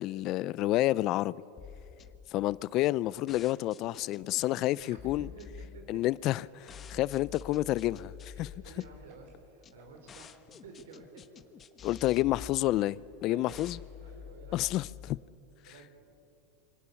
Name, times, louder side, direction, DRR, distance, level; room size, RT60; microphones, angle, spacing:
voice 1, 0.0-1.4 2.3-5.3 5.9-6.7 7.0-8.5 11.8-13.8 14.5-15.2, left 16 dB, 45° left, 0.5 m, -29 dB
sound 1, 1.6-15.2, left 8 dB, 30° left, 1.1 m, -49 dB
voice 2, 4.8-6.4 6.9-7.0 8.3-11.2 13.3-13.7 14.0-15.0 15.6-16.1, right 4 dB, 85° right, 4.8 m, -52 dB
sound 2, 8.5-14.3 14.7-14.8, right 4 dB, 40° right, 6.4 m, -66 dB
27.5 x 24.5 x 7.1 m
supercardioid pair, 120°, 0 cm